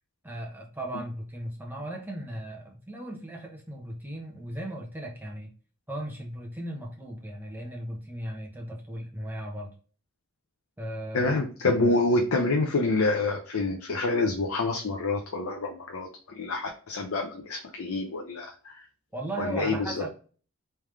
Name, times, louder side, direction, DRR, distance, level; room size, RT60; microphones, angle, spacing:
voice 1, 0.2-5.5 5.9-9.7 10.8-11.3 19.1-20.1, right 1 dB, 10° right, -1 dB, 0.9 m, -37 dB
voice 2, 11.1-16.1 16.3-18.8 19.4-19.9, left 2 dB, 70° left, 2 dB, 0.6 m, -27 dB
3.5 x 3.3 x 3.2 m, 0.39 s
head